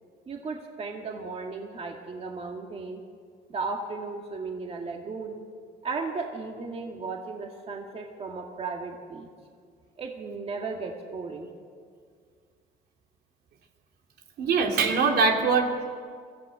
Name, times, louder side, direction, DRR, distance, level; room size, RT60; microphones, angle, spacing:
voice 1, 0.3-3.0 3.5-5.4 5.8-9.3 10.0-11.5, right 4 dB, 35° right, 2 dB, 2.1 m, -35 dB
voice 2, 14.4-15.9, right 4 dB, 70° right, 2 dB, 2.9 m, -23 dB
23.5 x 15.0 x 7.7 m, 2.1 s
cardioid pair, 110°, 17 cm